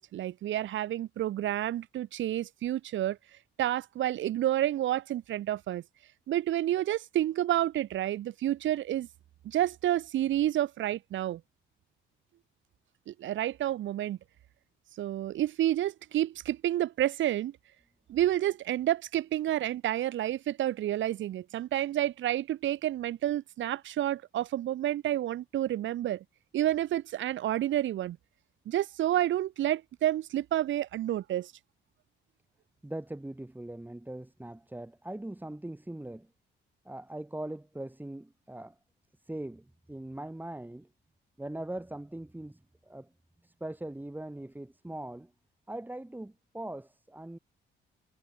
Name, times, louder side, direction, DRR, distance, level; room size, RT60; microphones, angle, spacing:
voice 1, 0.1-3.2 3.6-5.8 6.3-9.1 9.4-11.4 13.1-14.2 15.0-17.5 18.1-26.2 26.5-28.2 28.6-31.5, right 13 dB, 75° right, 1.6 m, -29 dB
voice 2, 32.8-36.3 36.8-38.8 39.2-40.9 41.4-43.1 43.4-45.3 45.7-47.4, right 1 dB, 10° right, 6.1 m, -41 dB
cardioid pair, 90°, 20 cm